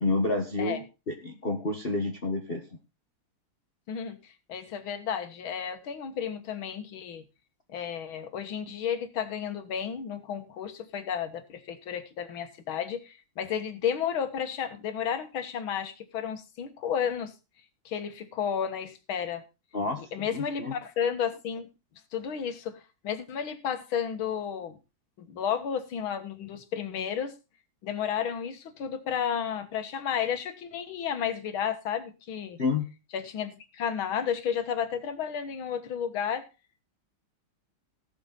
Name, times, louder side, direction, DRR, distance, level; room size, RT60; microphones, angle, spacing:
voice 1, 0.0-2.7 19.7-20.7 32.6-32.9, left 3 dB, 30° left, 2 dB, 1.3 m, -29 dB
voice 2, 3.9-7.2 7.7-17.3 17.9-19.4 20.1-21.7 22.1-24.7 25.2-27.3 27.8-32.6 33.1-36.5, left 8 dB, 75° left, 9 dB, 2.2 m, -32 dB
17.5 x 6.8 x 4.1 m, 0.30 s
omnidirectional pair, 2.3 m